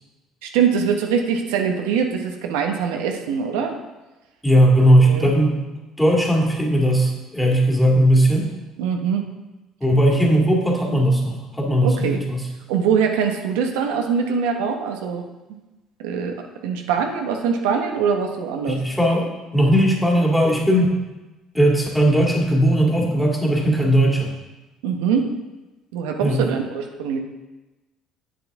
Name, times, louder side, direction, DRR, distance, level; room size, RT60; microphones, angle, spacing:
voice 1, 0.4-3.8 5.0-5.3 8.8-9.2 11.8-12.2 12.7-15.2 16.0-16.3 16.6-18.8 24.8-25.3 25.9-27.2, right 6 dB, 90° right, 3 dB, 0.8 m, -23 dB
voice 2, 4.4-5.6 6.0-8.4 9.8-12.5 18.7-20.9 21.5-24.3 26.2-26.4, right 1 dB, 5° left, -2 dB, 2.1 m, -18 dB
8.0 x 7.4 x 3.5 m, 1.1 s
supercardioid pair, 85°, 0 cm